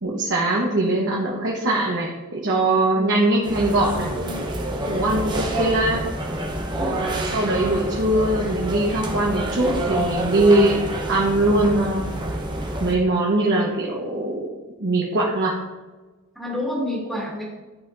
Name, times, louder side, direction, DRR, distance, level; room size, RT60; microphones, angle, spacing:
voice 1, 0.0-4.1 4.9-6.0 6.8-10.8 11.1-12.1 12.8-14.5 14.8-15.6, right 2 dB, 55° right, -4 dB, 1.1 m, -21 dB
voice 2, 2.9-3.2 4.1-4.5 4.8-5.0 6.8-7.0 16.3-17.4, left 1 dB, ahead, -4 dB, 1.7 m, -30 dB
sound 1, 3.4-13.0, right 1 dB, 20° right, 0.8 m, -28 dB
11.0 x 4.2 x 2.5 m, 1.2 s
head